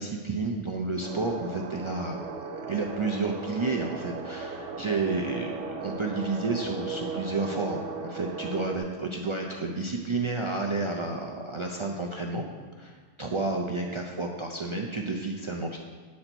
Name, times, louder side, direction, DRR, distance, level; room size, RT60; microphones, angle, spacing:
voice 1, 0.0-12.5 12.8-15.8, right 3 dB, 50° right, 0 dB, 0.3 m, -31 dB
sound 1, 1.0-8.8, right 4 dB, 85° right, 1.1 m, -37 dB
7.9 x 4.2 x 5.9 m, 1.5 s
omnidirectional pair, 1.2 m